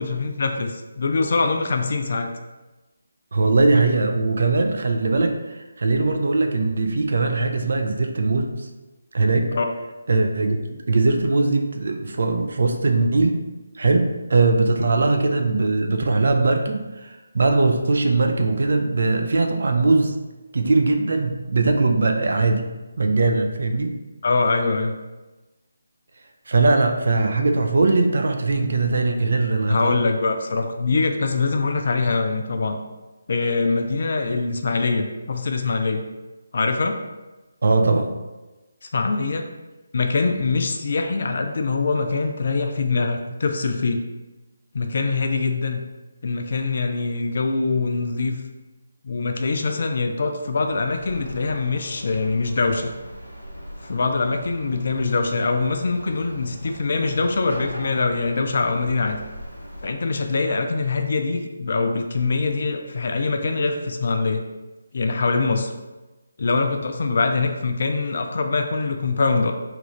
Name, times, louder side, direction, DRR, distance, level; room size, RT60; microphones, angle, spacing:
voice 1, 0.0-2.3 9.5-9.7 24.2-25.0 29.7-32.8 33.3-36.0 36.5-37.0 38.9-39.4 39.9-44.0 44.7-45.8 46.2-48.4 49.0-52.9 53.8-59.2 59.8-64.4 64.9-65.7 66.4-69.5, left 3 dB, 50° left, 5 dB, 0.4 m, -23 dB
voice 2, 3.3-8.7 9.1-9.6 10.1-13.4 13.8-20.2 20.5-22.7 23.0-24.0 26.5-30.0 37.6-38.1, right 3 dB, 55° right, 5 dB, 0.3 m, -20 dB
sound 1, 50.7-59.9, equal, 80° left, 0.8 m, -40 dB
3.0 x 2.4 x 3.1 m, 1.1 s
figure-of-eight pair, 150°, 0 cm